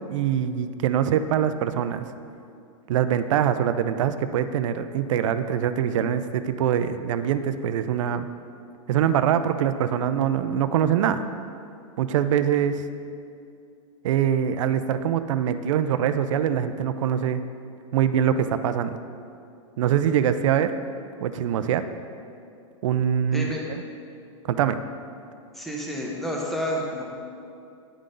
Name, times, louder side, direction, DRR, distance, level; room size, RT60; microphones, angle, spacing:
voice 1, 0.0-2.0 2.9-8.3 8.9-11.2 12.0-12.8 14.0-17.4 17.9-19.0 19.8-20.7 21.2-21.8 22.8-23.8 24.4-24.8, right 9 dB, 70° right, 11 dB, 0.4 m, -23 dB
voice 2, 23.3-23.7 25.5-27.0, equal, ahead, -2 dB, 0.7 m, -29 dB
9.8 x 3.8 x 5.1 m, 2.4 s
supercardioid pair, 155°, 17 cm